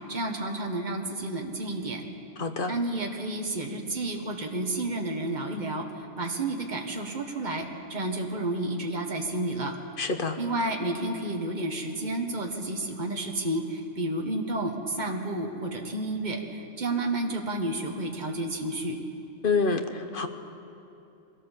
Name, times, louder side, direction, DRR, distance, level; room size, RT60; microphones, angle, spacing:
voice 1, 0.1-2.0 2.7-5.8 6.2-9.7 10.4-19.0, right 2 dB, 35° right, 2 dB, 1.7 m, -31 dB
voice 2, 2.4-2.7 10.0-10.4 19.4-20.3, left 4 dB, 45° left, 7 dB, 1.2 m, -27 dB
23.0 x 16.5 x 7.4 m, 2.8 s
omnidirectional pair, 1.3 m